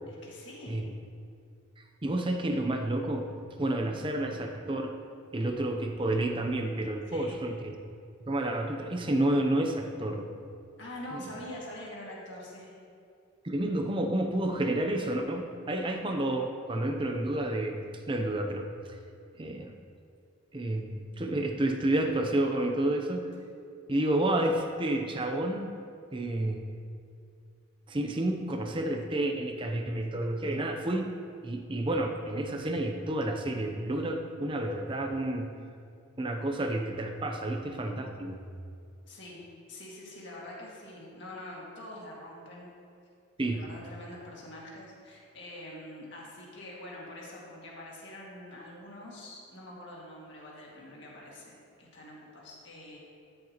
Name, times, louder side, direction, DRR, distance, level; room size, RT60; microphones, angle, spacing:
voice 1, 0.1-0.9 3.8-4.1 7.1-7.4 10.8-12.7 39.1-42.7 43.4-53.0, left 1 dB, 60° left, -4 dB, 2.0 m, -45 dB
voice 2, 2.0-4.9 5.3-7.8 8.3-10.3 11.1-11.3 13.4-18.7 19.4-19.7 20.5-23.2 23.9-25.8 26.1-26.7 27.9-31.2 31.4-35.6 36.2-38.4 43.4-43.7, right 1 dB, 25° right, 4 dB, 0.5 m, -30 dB
13.0 x 6.6 x 2.9 m, 2.4 s
head